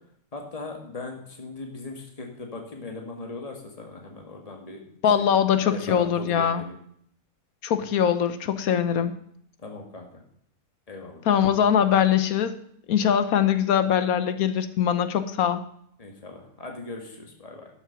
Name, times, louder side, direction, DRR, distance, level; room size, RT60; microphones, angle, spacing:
voice 1, 0.3-4.8 5.1-5.4 5.7-6.6 9.6-10.0 10.9-11.2 16.0-17.7, left 3 dB, 25° left, 2 dB, 2.0 m, -39 dB
voice 2, 5.0-6.6 7.6-9.1 11.2-12.5 12.9-15.6, left 8 dB, 80° left, 11 dB, 1.3 m, -22 dB
12.0 x 7.1 x 5.9 m, 0.67 s
omnidirectional pair, 1.5 m